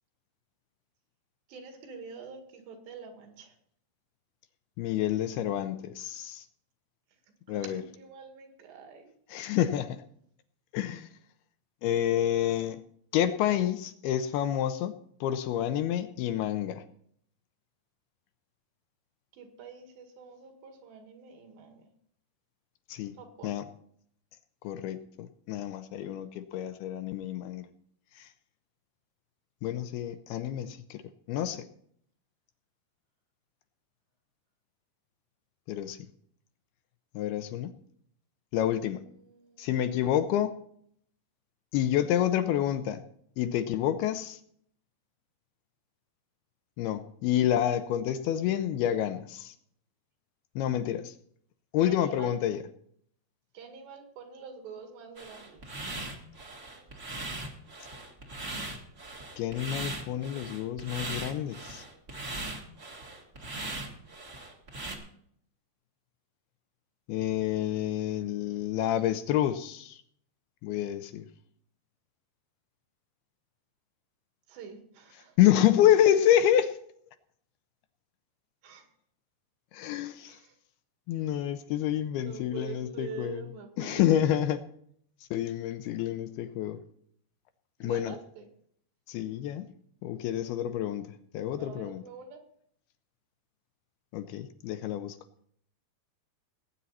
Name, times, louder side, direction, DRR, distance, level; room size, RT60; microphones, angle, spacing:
voice 1, 1.5-3.5 7.5-9.1 13.6-13.7 19.3-21.9 23.2-23.6 38.7-40.1 51.8-52.3 53.5-55.7 68.5-69.1 74.5-75.4 78.6-78.9 80.2-80.6 82.1-84.1 87.8-88.5 91.6-92.4, right 5 dB, 80° right, 4 dB, 4.2 m, -46 dB
voice 2, 4.8-6.5 7.5-7.8 9.3-10.0 10.7-11.1 11.8-12.8 13.1-16.8 22.9-23.2 23.4-23.6 24.6-27.7 28.2-28.3 29.6-31.0 31.3-31.7 35.7-36.0 37.1-37.7 38.5-39.0 39.6-40.5 41.7-43.0 43.4-44.4 46.8-49.5 50.6-51.2 51.7-52.6 59.4-61.8 67.1-70.0 70.6-71.3 75.4-76.8 79.7-80.4 81.1-83.4 83.8-84.6 85.3-86.8 87.8-88.2 89.1-89.7 90.0-91.1 91.3-92.0 94.1-95.2, left 11 dB, 80° left, 10 dB, 2.5 m, -28 dB
sound 1, 55.2-65.0, right 2 dB, 45° right, 0.9 m, -39 dB
19.0 x 9.0 x 4.2 m, 0.65 s
omnidirectional pair, 4.9 m